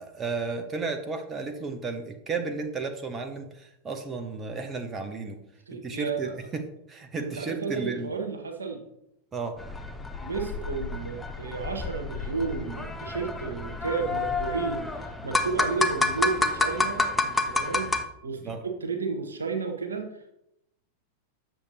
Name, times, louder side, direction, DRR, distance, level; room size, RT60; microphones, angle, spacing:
voice 1, 0.0-5.4 5.7-8.1 9.3-9.6 18.4-18.6, right 4 dB, 20° right, 5 dB, 0.8 m, -33 dB
voice 2, 5.7-6.3 7.2-8.8 10.2-17.9 18.2-20.3, right 4 dB, 70° right, 4 dB, 1.3 m, -32 dB
sound 1, 9.6-18.0, left 2 dB, 10° left, 0.7 m, -29 dB
8.6 x 6.6 x 2.8 m, 0.81 s
figure-of-eight pair, 90°, 0 cm